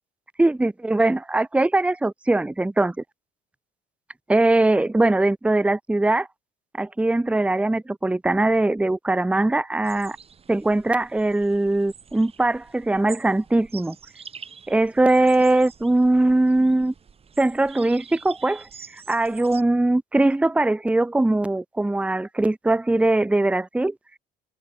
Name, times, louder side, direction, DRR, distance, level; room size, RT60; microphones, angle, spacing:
voice 1, 0.4-2.9 4.3-6.3 6.7-10.2 10.5-14.0 14.7-16.9 17.4-23.9, right 2 dB, 5° right, 0.9 m, -21 dB
sound 1, 9.8-19.6, right 6 dB, 35° right, 3.6 m, -46 dB
cardioid pair, 110°, 17 cm